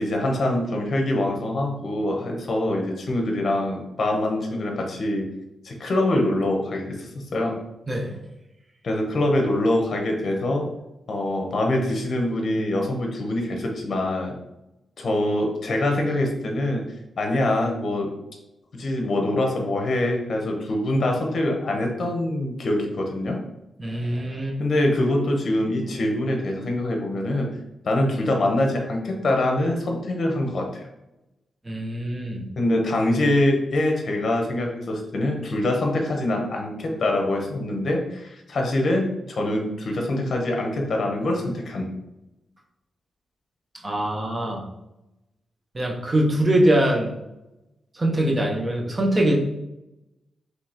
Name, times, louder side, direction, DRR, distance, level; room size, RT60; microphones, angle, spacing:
voice 1, 0.0-5.3 5.6-7.6 8.8-10.7 11.1-14.3 15.0-16.9 17.2-18.1 18.7-23.4 24.6-27.6 27.8-30.9 32.6-41.9, left 1 dB, 45° left, 1 dB, 0.8 m, -24 dB
voice 2, 23.8-24.6 31.6-32.4 43.8-44.6 45.7-47.1 47.9-49.4, right 1 dB, 20° right, 0 dB, 0.7 m, -23 dB
5.1 x 3.2 x 2.9 m, 0.92 s
wide cardioid pair, 175°, 0 cm